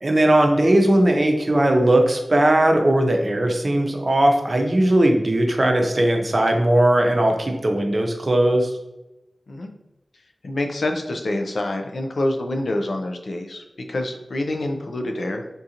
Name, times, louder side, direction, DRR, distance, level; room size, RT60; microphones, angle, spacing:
voice 1, 0.0-8.7, right 1 dB, 50° right, 3 dB, 0.6 m, -18 dB
voice 2, 10.4-15.5, left 1 dB, 85° left, 3 dB, 0.4 m, -26 dB
3.7 x 2.5 x 2.8 m, 0.97 s
wide cardioid pair, 50°, 0 cm